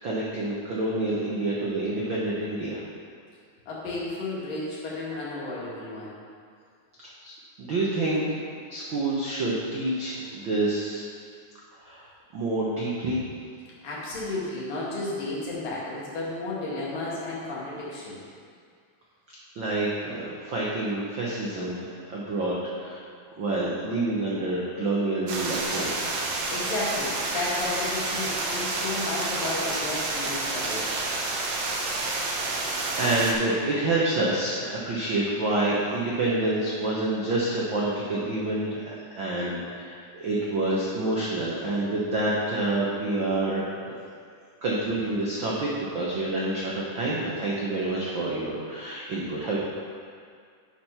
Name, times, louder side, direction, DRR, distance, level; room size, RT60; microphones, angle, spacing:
voice 1, 0.0-2.8 7.2-8.2 8.7-11.0 11.8-12.0 12.3-13.2 19.6-23.0 23.4-25.9 32.9-43.9 44.6-49.6, right 2 dB, 90° right, -6 dB, 1.0 m, -28 dB
voice 2, 3.7-6.2 10.4-10.5 13.8-18.3 26.5-30.9, left 2 dB, 80° left, -6 dB, 3.6 m, -33 dB
sound 1, 25.3-33.3, right 2 dB, 65° right, 1.5 m, -29 dB
10.0 x 4.6 x 5.8 m, 2.1 s
omnidirectional pair, 3.9 m